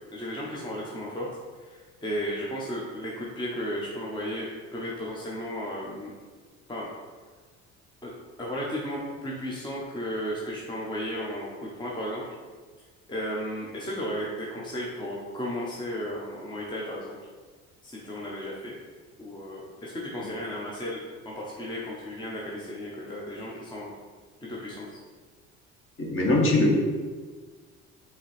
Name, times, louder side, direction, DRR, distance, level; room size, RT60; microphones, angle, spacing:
voice 1, 0.1-1.3 1.6-6.1 6.7-6.9 8.0-8.1 8.4-12.2 13.1-17.2 17.8-18.7 19.2-23.9 24.5-24.9, equal, 10° left, -4 dB, 0.8 m, -34 dB
voice 2, 26.0-26.7, left 2 dB, 30° left, -2 dB, 1.2 m, -21 dB
4.8 x 3.0 x 3.3 m, 1.5 s
figure-of-eight pair, 55°, 40 cm